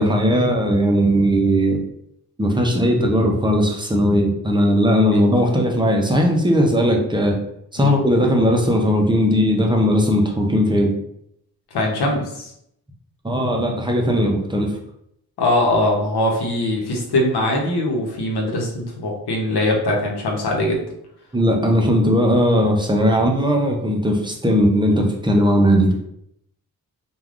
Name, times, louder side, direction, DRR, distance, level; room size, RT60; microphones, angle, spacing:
voice 1, 0.0-1.8 2.4-7.4 7.7-10.9 13.2-14.7 21.3-25.9, equal, 15° right, 1 dB, 0.5 m, -18 dB
voice 2, 11.7-12.5 15.4-20.8, left 1 dB, 90° left, -1 dB, 0.8 m, -21 dB
3.3 x 2.3 x 2.4 m, 0.74 s
wide cardioid pair, 95°, 38 cm